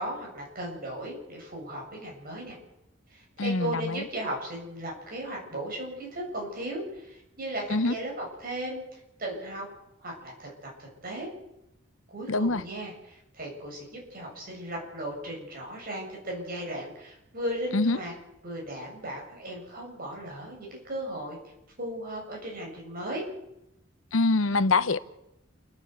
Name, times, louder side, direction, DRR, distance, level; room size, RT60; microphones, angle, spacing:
voice 1, 0.0-2.6 3.1-9.6 10.0-10.5 10.8-11.3 12.1-18.1 18.4-21.4 21.8-23.2, right 1 dB, 50° right, 7.8 m, -36 dB
voice 2, 3.4-4.0 7.7-7.9 12.3-12.6 17.7-18.0 24.1-25.0, left 3 dB, 80° left, 0.9 m, -24 dB
29.0 x 10.5 x 8.3 m
head